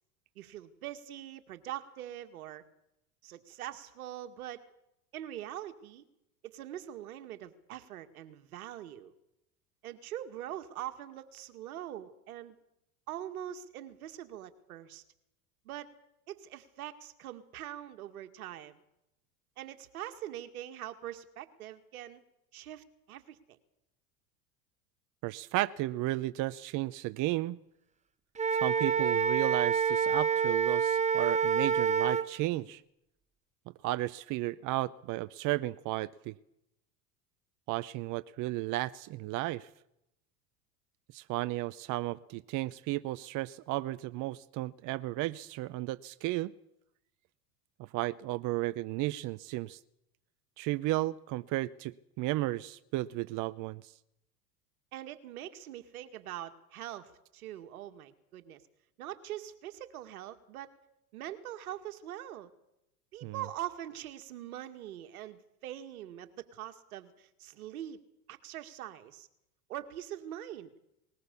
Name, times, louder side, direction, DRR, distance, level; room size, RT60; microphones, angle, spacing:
voice 1, 0.4-2.6 3.2-4.6 5.1-6.0 6.4-9.1 9.8-12.6 13.1-15.0 15.7-15.9 16.3-18.8 19.6-22.2 22.5-23.6 54.9-58.6 59.0-60.7 61.1-62.5 63.1-68.0 68.3-69.3 69.7-70.7, right 12 dB, 80° right, 8 dB, 2.1 m, -43 dB
voice 2, 25.2-27.6 28.5-32.8 33.8-36.3 37.7-39.7 41.1-46.5 47.8-49.8 50.6-53.9 63.2-63.3, right 17 dB, 45° right, 15 dB, 0.7 m, -34 dB
Wind instrument woodwind instrument, 28.4-32.3, right 6 dB, 15° right, 1.1 m, -27 dB
20.5 x 19.5 x 7.0 m, 0.83 s
hypercardioid pair, 100°, 43 cm